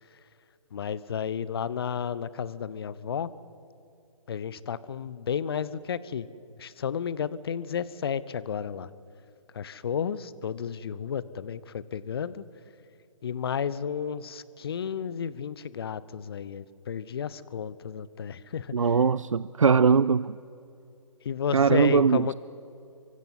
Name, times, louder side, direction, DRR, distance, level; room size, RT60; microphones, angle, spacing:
voice 1, 0.7-3.3 4.3-6.3 6.6-8.9 9.5-12.4 13.2-18.8 21.2-22.3, left 7 dB, 45° left, 18 dB, 0.9 m, -32 dB
voice 2, 18.7-20.4 21.5-22.3, right 5 dB, 75° right, 18 dB, 0.5 m, -21 dB
27.0 x 24.0 x 5.7 m, 2.6 s
figure-of-eight pair, 135°, 17 cm